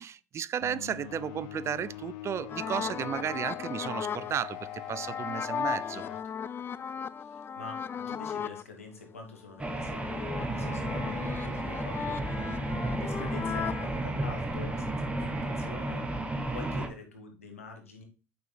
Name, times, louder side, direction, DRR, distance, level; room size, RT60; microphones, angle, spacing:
voice 1, 0.0-6.0, right 9 dB, 40° right, 0.4 m, -34 dB
sound 1, 0.6-6.2, left 14 dB, 65° left, 0.7 m, -42 dB
sound 2, 2.5-8.6 9.1-13.9, left 7 dB, 30° left, 0.4 m, -36 dB
voice 2, 7.2-12.4 12.8-16.1 16.5-18.0, left 3 dB, 90° left, 1.5 m, -46 dB
sound 3, 9.6-16.9, right 2 dB, 15° right, 1.5 m, -33 dB
8.5 x 5.7 x 2.2 m
hypercardioid pair, 65°, 7 cm